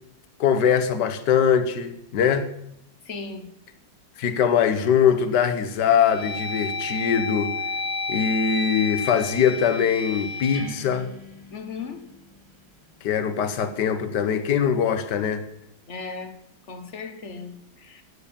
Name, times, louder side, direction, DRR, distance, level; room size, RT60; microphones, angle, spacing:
voice 1, 0.4-2.5 4.2-7.5 8.1-11.1 13.0-15.4, left 7 dB, 70° left, 1.7 m, -22 dB
voice 2, 3.0-3.5 11.5-12.1 15.9-16.3 16.7-18.0, left 4 dB, 40° left, 1.5 m, -36 dB
sound 1, 5.1-5.3 5.8-11.9, left 3 dB, 20° left, 2.4 m, -32 dB
11.0 x 9.6 x 7.0 m
omnidirectional pair, 1.9 m